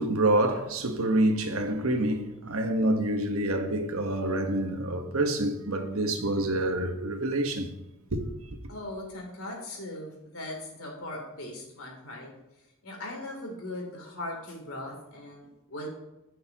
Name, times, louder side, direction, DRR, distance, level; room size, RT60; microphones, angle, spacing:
voice 1, 0.0-7.7 8.1-8.6, right 1 dB, 70° right, 1.2 m, -27 dB
voice 2, 8.7-12.3 12.8-15.9, left 1 dB, 70° left, 3.0 m, -39 dB
15.5 x 6.6 x 2.9 m
head